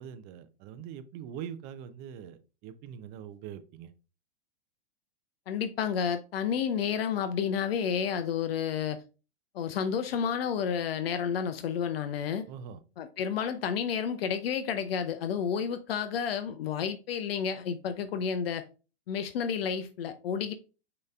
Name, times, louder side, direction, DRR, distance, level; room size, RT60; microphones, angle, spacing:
voice 1, 0.0-3.9 12.5-12.8, right 8 dB, 30° right, 0.5 m, -43 dB
voice 2, 5.5-9.0 9.5-12.4 13.0-18.6 19.1-20.5, left 7 dB, 60° left, 0.5 m, -31 dB
6.3 x 2.9 x 2.4 m
hypercardioid pair, 105°, 33 cm